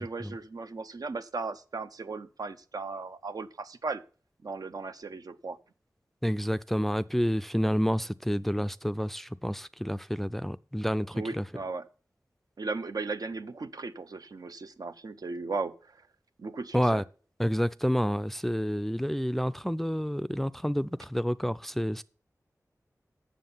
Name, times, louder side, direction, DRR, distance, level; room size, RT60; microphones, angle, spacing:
voice 1, 0.0-4.0 4.4-5.6 11.1-11.9 12.6-16.0 16.4-17.0, right 3 dB, 80° right, 0.7 m, -36 dB
voice 2, 6.2-11.4 16.7-17.0 17.4-22.0, equal, 5° left, 0.3 m, -29 dB
7.6 x 7.0 x 5.5 m
wide cardioid pair, 70°, 6 cm